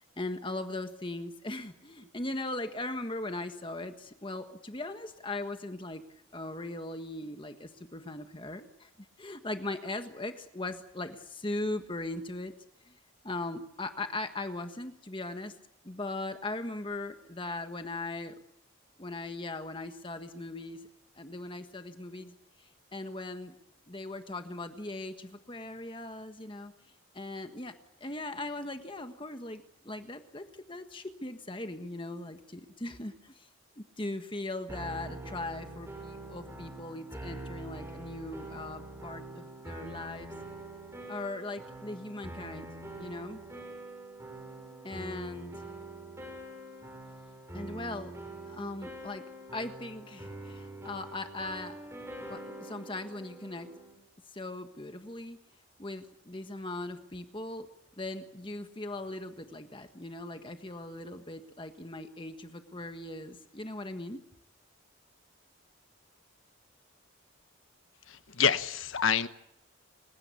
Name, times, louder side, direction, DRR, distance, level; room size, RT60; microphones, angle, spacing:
voice 1, 0.0-6.0 6.3-8.9 9.2-12.5 12.9-13.0 13.2-15.5 15.8-18.3 19.0-20.9 21.2-23.5 23.9-26.7 27.1-33.5 33.8-40.3 41.1-42.7 43.0-43.4 44.8-45.6 47.5-48.1 48.5-49.2 49.5-51.7 52.3-53.7 54.3-55.4 55.8-57.7 58.0-64.2, left 2 dB, 25° left, 1.5 m, -39 dB
sound 1, 34.7-53.9, right 2 dB, 10° right, 6.6 m, -44 dB
voice 2, 68.1-69.3, left 7 dB, 70° left, 1.2 m, -27 dB
29.0 x 17.0 x 8.5 m
head